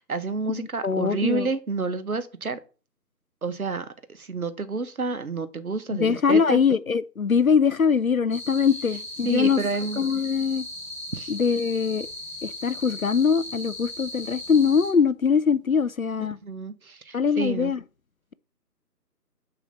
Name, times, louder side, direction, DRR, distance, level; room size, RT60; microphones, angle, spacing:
voice 1, 0.0-2.6 3.4-6.6 9.2-10.0 11.1-11.3 16.4-17.7, right 3 dB, 60° right, 1.2 m, -29 dB
voice 2, 0.5-1.5 5.9-9.6 10.0-10.7 11.3-12.1 12.4-16.4 17.1-17.8, left 6 dB, 60° left, 0.5 m, -22 dB
sound 1, 8.3-14.9, left 1 dB, 10° left, 3.8 m, -37 dB
6.7 x 4.9 x 6.9 m
figure-of-eight pair, 160°, 49 cm